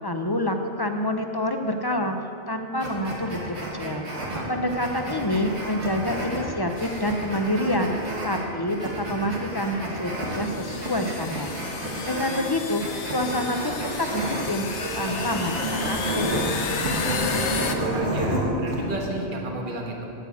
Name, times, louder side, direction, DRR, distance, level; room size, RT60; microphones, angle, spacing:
voice 1, 0.0-4.0 4.5-7.9 8.2-11.5 12.1-14.7 15.0-16.5, left 1 dB, 30° left, 5 dB, 0.5 m, -27 dB
sound 1, 2.8-18.8, right 1 dB, 70° right, 2.4 m, -30 dB
voice 2, 4.2-4.5 16.7-20.0, right 2 dB, 45° right, 0 dB, 1.4 m, -34 dB
sound 2, 6.8-7.1 8.1-8.2 9.3-9.4 10.2-17.8, left 5 dB, 75° left, 1.1 m, -33 dB
9.0 x 8.2 x 8.4 m, 2.7 s
omnidirectional pair, 1.2 m